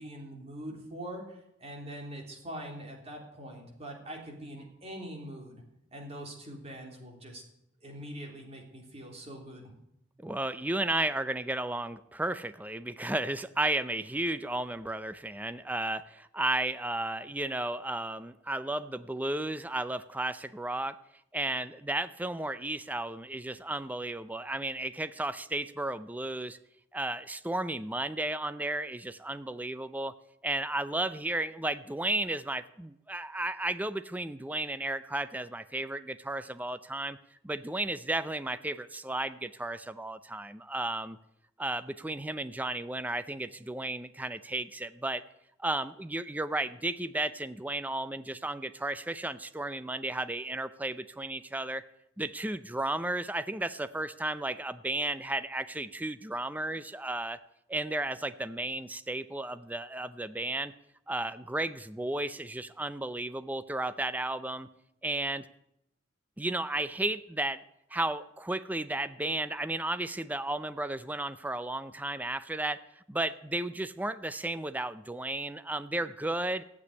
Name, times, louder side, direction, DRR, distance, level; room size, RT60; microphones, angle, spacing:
voice 1, 0.0-5.6 5.9-7.4 7.8-9.7, right 1 dB, 35° right, 0 dB, 3.3 m, -43 dB
voice 2, 10.2-21.0 21.3-26.6 26.9-30.1 30.4-37.2 37.4-41.2 41.6-45.2 45.6-51.8 52.2-57.4 57.7-60.7 61.1-64.7 65.0-65.5 66.4-67.6 67.9-72.8 73.1-76.6, right 2 dB, 10° right, 12 dB, 0.5 m, -33 dB
15.0 x 8.4 x 9.7 m, 0.79 s
head